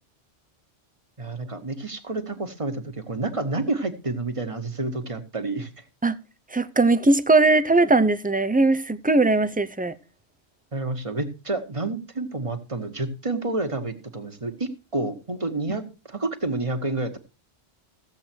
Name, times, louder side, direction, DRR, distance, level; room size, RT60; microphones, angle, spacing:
voice 1, 1.2-5.7 10.7-17.2, right 2 dB, 30° right, 1.4 m, -29 dB
voice 2, 6.5-9.9, right 3 dB, 10° right, 0.4 m, -19 dB
15.0 x 8.0 x 4.5 m
omnidirectional pair, 1.1 m